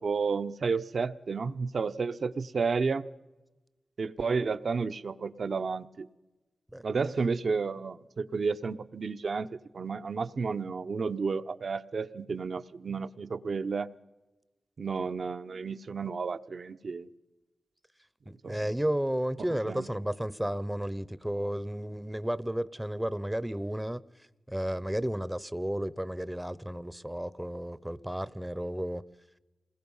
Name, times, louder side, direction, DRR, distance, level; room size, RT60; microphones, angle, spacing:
voice 1, 0.0-3.0 4.0-6.1 6.8-13.9 14.8-17.1 18.4-18.7 19.7-19.9, right 5 dB, 60° right, 0.8 m, -32 dB
voice 2, 18.3-24.0 24.5-29.0, equal, 5° right, 0.7 m, -33 dB
28.0 x 21.0 x 5.6 m
wide cardioid pair, 110°, 0 cm